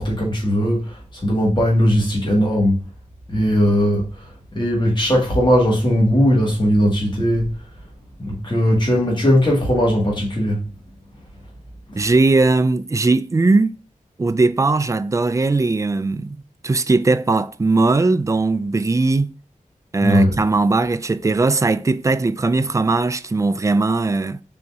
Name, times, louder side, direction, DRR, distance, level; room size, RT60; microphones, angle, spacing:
voice 1, 0.0-2.8 3.3-4.1 4.6-7.6 8.2-10.6 20.0-20.4, equal, 35° left, 1.7 m, -18 dB
voice 2, 12.0-13.7 14.2-16.4 16.6-19.3 19.9-24.4, right 3 dB, 20° right, 0.3 m, -19 dB
4.0 x 3.0 x 3.4 m
wide cardioid pair, 95°, 14 cm